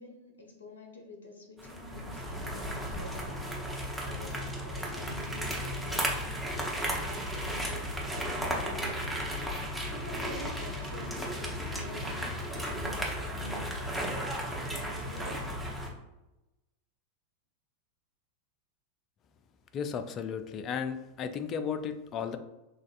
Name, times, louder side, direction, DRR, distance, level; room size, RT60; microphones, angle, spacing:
voice 1, 0.0-3.3 4.0-9.2 9.9-12.4 12.7-15.5, left 2 dB, 75° left, 1 dB, 0.9 m, -47 dB
sound 1, 1.6-15.9, equal, ahead, 0.9 m, -35 dB
voice 2, 19.7-22.4, left 7 dB, 35° left, 9 dB, 0.4 m, -34 dB
6.2 x 2.4 x 2.5 m, 0.99 s
figure-of-eight pair, 90°, 0 cm